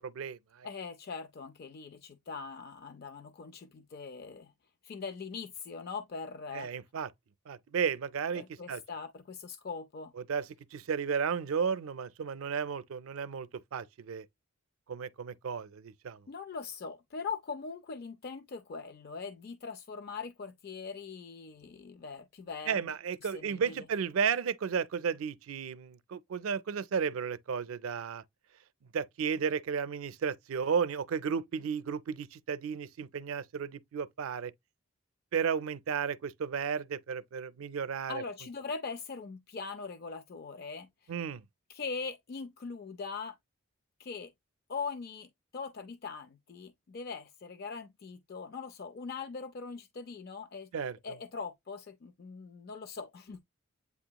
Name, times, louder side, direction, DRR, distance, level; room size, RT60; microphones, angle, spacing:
voice 1, 0.0-0.7 6.5-7.1 7.5-8.8 10.3-14.2 14.9-16.2 22.7-28.2 28.9-34.5 35.3-38.2 41.1-41.4 50.7-51.0, right 6 dB, 80° right, 0.4 m, -33 dB
voice 2, 0.6-4.5 4.8-6.7 8.4-10.1 16.3-22.8 23.2-23.8 38.1-41.1 41.7-43.4 44.0-44.3 44.7-50.7 51.0-53.4, left 5 dB, 50° left, 0.4 m, -41 dB
8.2 x 2.8 x 2.2 m
head